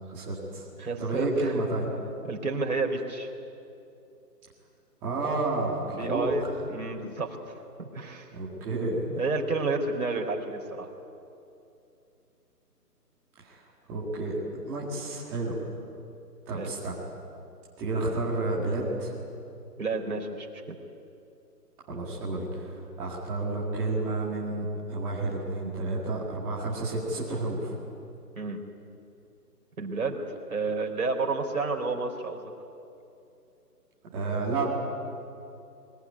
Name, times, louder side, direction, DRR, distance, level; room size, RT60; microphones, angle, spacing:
voice 1, 0.1-0.7 1.0-1.9 5.0-6.3 8.3-8.9 13.4-13.6 13.9-14.4 14.7-15.5 16.5-17.0 17.8-19.1 21.9-22.7 23.0-27.7 34.1-34.7, right 2 dB, 5° right, -7 dB, 1.9 m, -30 dB
voice 2, 0.8-1.5 2.3-3.3 5.9-8.4 9.1-10.9 16.5-16.7 19.8-20.8 28.3-28.6 29.8-30.2 30.5-32.5, right 3 dB, 60° right, 2 dB, 4.4 m, -31 dB
23.5 x 20.0 x 9.8 m, 2.7 s
hypercardioid pair, 175°, 48 cm